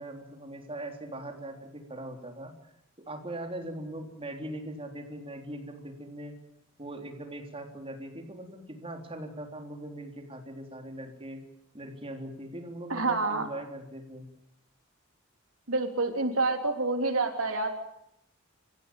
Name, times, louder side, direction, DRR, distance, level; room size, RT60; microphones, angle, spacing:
voice 1, 0.0-2.5 3.1-6.3 6.8-11.4 11.7-14.3, right 1 dB, 30° right, 3 dB, 3.7 m, -40 dB
voice 2, 12.9-13.5 15.7-17.7, right 3 dB, 85° right, 4 dB, 3.6 m, -27 dB
27.0 x 15.5 x 9.2 m, 0.78 s
head